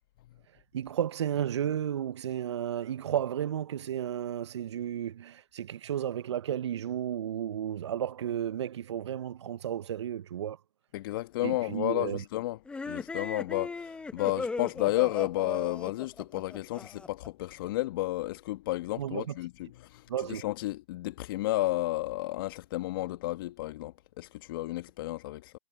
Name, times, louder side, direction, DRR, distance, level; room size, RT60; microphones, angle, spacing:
voice 1, 0.5-10.6 11.4-12.2 19.0-19.3 20.1-20.4, right 10 dB, 70° right, 0.7 m, -33 dB
voice 2, 10.9-12.6 12.9-25.5, left 17 dB, 50° left, 1.2 m, -32 dB
sound 1, 12.7-17.3, left 3 dB, 5° left, 0.9 m, -38 dB
hypercardioid pair, 130°, 15 cm